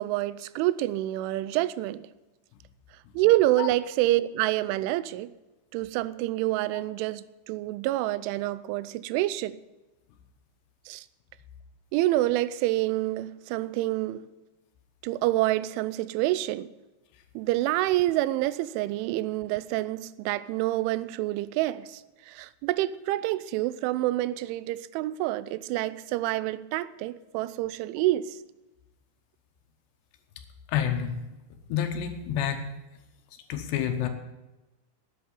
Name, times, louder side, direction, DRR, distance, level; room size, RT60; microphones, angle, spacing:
voice 1, 0.0-2.1 3.1-5.3 5.7-9.6 10.9-11.1 11.9-14.3 15.0-16.7 17.4-22.0 22.3-28.4, right 16 dB, 85° right, 3.0 m, -27 dB
voice 2, 30.7-31.2 31.7-32.7 33.5-34.1, left 9 dB, 75° left, 2.8 m, -28 dB
11.0 x 8.6 x 9.5 m
omnidirectional pair, 5.4 m